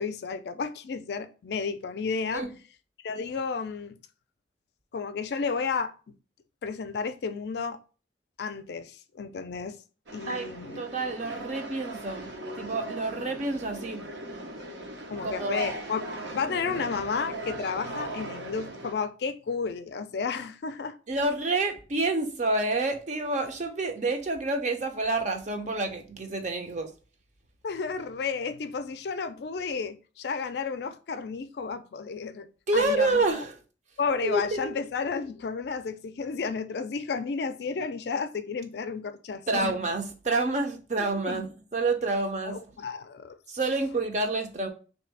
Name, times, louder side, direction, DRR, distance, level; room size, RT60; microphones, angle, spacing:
voice 1, 0.0-2.4 3.0-4.0 4.9-6.2 6.6-7.8 8.4-9.8 10.1-10.8 15.1-16.0 16.3-21.0 27.6-33.2 34.0-39.7 41.0-41.5 42.4-43.4, left 5 dB, 60° left, 0.4 m, -32 dB
sound 1, 10.1-18.9, right 1 dB, 75° right, 0.9 m, -38 dB
voice 2, 10.3-12.3 12.6-14.0 15.2-15.6 21.1-26.9 32.7-33.5 34.2-34.8 39.5-42.6 43.5-44.7, right 2 dB, 40° right, 0.6 m, -28 dB
3.4 x 2.7 x 4.5 m
head